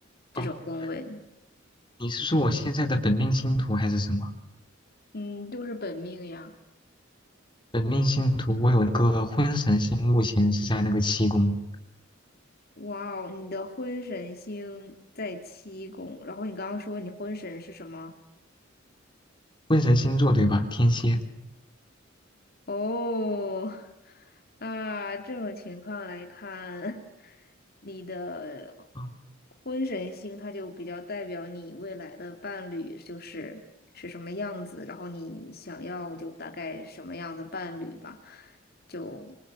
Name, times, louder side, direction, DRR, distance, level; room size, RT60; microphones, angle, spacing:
voice 1, 0.3-1.2 5.1-6.5 12.8-18.2 22.7-27.5 27.8-28.9 29.6-33.6 33.9-38.6 38.9-39.4, left 2 dB, 50° left, 4 dB, 2.8 m, -36 dB
voice 2, 2.0-4.3 7.7-11.6 19.7-21.2 29.0-29.1, equal, 25° left, 5 dB, 3.4 m, -23 dB
26.0 x 25.5 x 8.9 m, 0.86 s
head